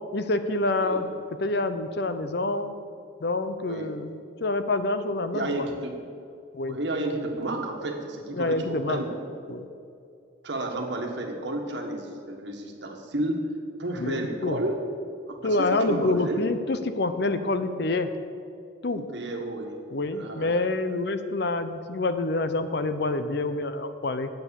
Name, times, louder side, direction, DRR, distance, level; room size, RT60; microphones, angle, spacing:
voice 1, 0.1-1.1 1.4-2.7 3.2-5.6 6.5-6.8 8.3-9.0 9.5-9.7 14.0-14.6 15.4-18.1 18.8-19.0 19.9-24.3, left 2 dB, 55° left, 10 dB, 0.6 m, -27 dB
voice 2, 3.6-3.9 5.3-5.9 6.6-9.2 10.4-13.5 13.8-14.8 15.3-16.4 18.9-19.7 20.1-20.5, right 1 dB, 60° right, 2 dB, 1.5 m, -32 dB
9.7 x 7.8 x 7.0 m, 2.4 s
head